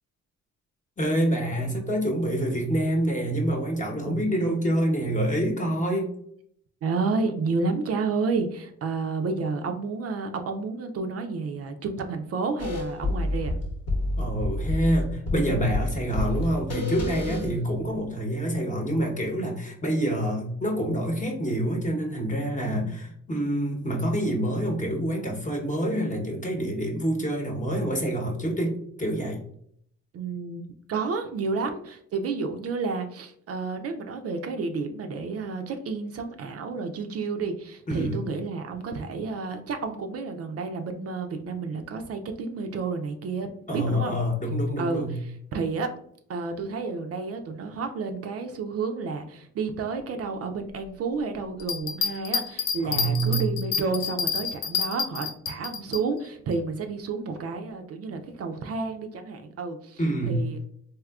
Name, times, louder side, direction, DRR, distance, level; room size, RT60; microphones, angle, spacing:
voice 1, 1.0-6.1 14.2-29.4 37.9-38.2 43.7-45.2 52.8-53.5 60.0-60.5, right 1 dB, 25° left, 1 dB, 0.9 m, -27 dB
voice 2, 6.8-13.5 17.3-17.6 22.6-23.0 30.1-44.2 44.8-45.9 46.3-60.6, right 4 dB, 55° right, 5 dB, 0.4 m, -31 dB
sound 1, 12.6-18.1, left 2 dB, 55° left, 0.9 m, -29 dB
Bell, 51.6-56.0 56.5-56.6, left 7 dB, 80° left, 0.5 m, -28 dB
3.5 x 2.7 x 2.3 m, 0.67 s
cardioid pair, 90°, 30 cm